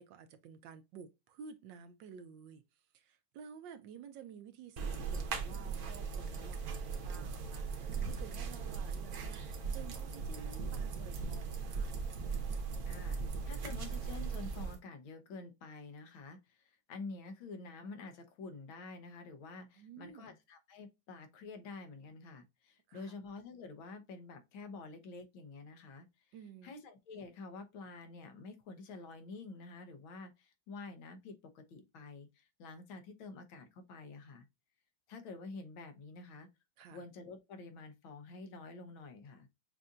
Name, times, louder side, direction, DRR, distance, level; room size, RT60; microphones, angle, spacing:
voice 1, 0.0-11.9 19.8-20.4 22.9-23.1 26.3-26.7 36.8-37.0, right 7 dB, 75° right, 1.3 m, -53 dB
sound 1, 4.8-14.8, right 5 dB, 55° right, 1.2 m, -38 dB
voice 2, 12.9-13.2 13.5-26.3 26.6-34.4 35.1-36.5 36.9-39.5, left 3 dB, 80° left, 1.7 m, -48 dB
6.6 x 2.6 x 2.4 m
omnidirectional pair, 2.2 m